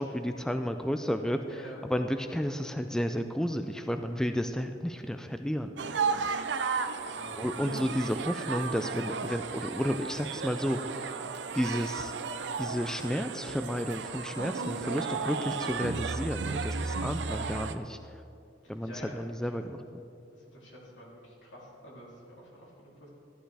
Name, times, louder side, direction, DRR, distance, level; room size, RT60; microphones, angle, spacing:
voice 1, 0.0-6.1 7.4-11.1 11.5-12.1 12.6-18.2 18.7-20.0, equal, 5° left, 7 dB, 0.3 m, -32 dB
voice 2, 1.5-1.8 7.1-7.8 16.5-16.9 18.6-19.2 20.3-23.1, equal, 80° left, -5 dB, 3.2 m, -49 dB
sound 1, 5.8-17.8, right 5 dB, 65° right, 0.5 m, -34 dB
13.5 x 11.5 x 3.4 m, 2.5 s
head